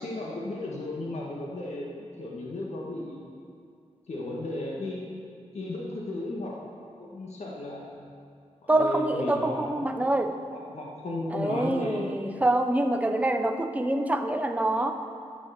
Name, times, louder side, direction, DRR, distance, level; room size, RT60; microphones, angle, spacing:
voice 1, 0.0-3.3 4.1-5.0 5.5-6.6 7.0-8.1 8.6-9.9 10.5-12.0, left 2 dB, 65° left, -3 dB, 1.7 m, -35 dB
voice 2, 8.7-10.4 11.3-14.9, right 1 dB, 10° right, 6 dB, 0.7 m, -26 dB
12.5 x 7.2 x 7.0 m, 2.3 s
wide cardioid pair, 135°, 12 cm